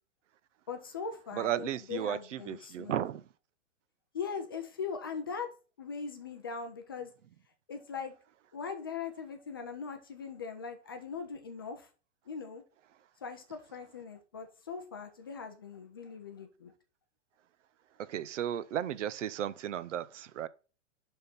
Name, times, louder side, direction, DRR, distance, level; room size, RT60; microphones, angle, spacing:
voice 1, 0.7-2.9 4.1-5.5 5.8-7.1 7.7-8.1 8.5-11.9 12.3-12.6 13.2-16.7, left 6 dB, 20° left, 0.4 m, -40 dB
voice 2, 1.3-3.3 18.0-20.5, right 10 dB, 80° right, 0.8 m, -34 dB
11.0 x 3.7 x 4.0 m
hypercardioid pair, 170°, 36 cm